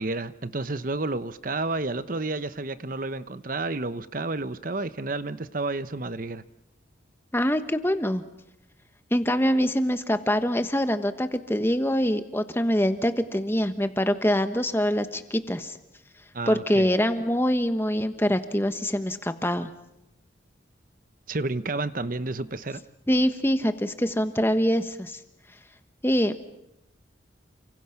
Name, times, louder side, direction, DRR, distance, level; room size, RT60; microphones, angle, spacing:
voice 1, 0.0-6.4 16.3-16.9 21.3-22.8, right 2 dB, 45° right, 13 dB, 0.9 m, -30 dB
voice 2, 7.3-8.2 9.1-15.8 16.5-19.7 23.1-25.2 26.0-26.4, equal, 10° left, 9 dB, 1.3 m, -24 dB
29.5 x 26.0 x 6.0 m, 0.87 s
head